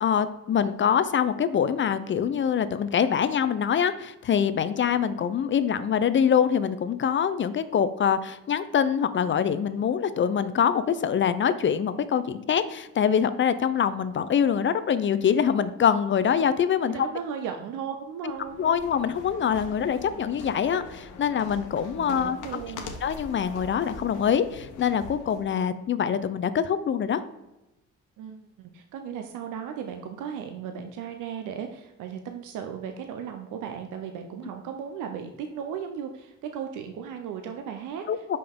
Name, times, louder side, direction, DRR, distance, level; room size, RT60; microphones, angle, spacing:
voice 1, 0.0-17.0 18.2-18.3 18.6-22.6 23.0-27.2 38.1-38.4, left 8 dB, 40° left, 13 dB, 0.4 m, -24 dB
voice 2, 16.9-18.8 22.0-22.9 28.2-38.4, right 7 dB, 85° right, 5 dB, 0.6 m, -36 dB
sound 1, 18.3-25.5, left 4 dB, 90° left, 1.0 m, -43 dB
5.6 x 5.3 x 3.5 m, 0.96 s
cardioid pair, 90°, 30 cm